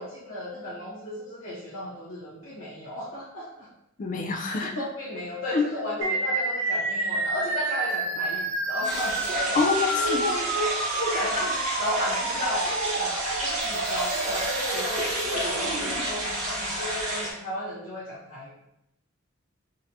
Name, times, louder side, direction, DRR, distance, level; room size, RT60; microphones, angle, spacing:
voice 1, 0.0-3.7 4.6-9.6 9.9-10.7 11.0-18.5, left 1 dB, 70° left, -11 dB, 1.1 m, -34 dB
voice 2, 4.0-4.8 5.5-5.6 6.0-6.1 9.5-10.2, left 4 dB, 40° left, 2 dB, 0.4 m, -26 dB
sound 1, 6.0-16.0, right 2 dB, 80° right, 0.6 m, -30 dB
sound 2, 8.8-17.3, right 1 dB, 35° right, 1.4 m, -30 dB
4.1 x 2.8 x 2.6 m, 0.82 s
head